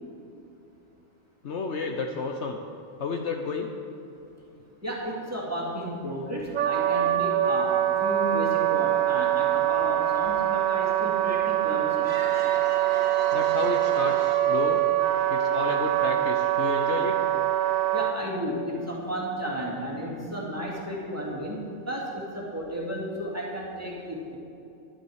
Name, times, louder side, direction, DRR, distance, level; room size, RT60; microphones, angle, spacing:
voice 1, 1.4-2.6 3.0-3.7 13.3-14.9 15.3-17.2, left 4 dB, 65° left, 3 dB, 1.0 m, -31 dB
voice 2, 4.8-12.1 17.9-24.4, equal, 10° right, -5 dB, 2.2 m, -33 dB
Wind instrument woodwind instrument, 6.5-18.1, right 12 dB, 80° right, 1.0 m, -24 dB
sound 1, 12.0-16.6, right 3 dB, 65° right, 1.5 m, -37 dB
11.0 x 10.5 x 4.7 m, 2.7 s
omnidirectional pair, 1.4 m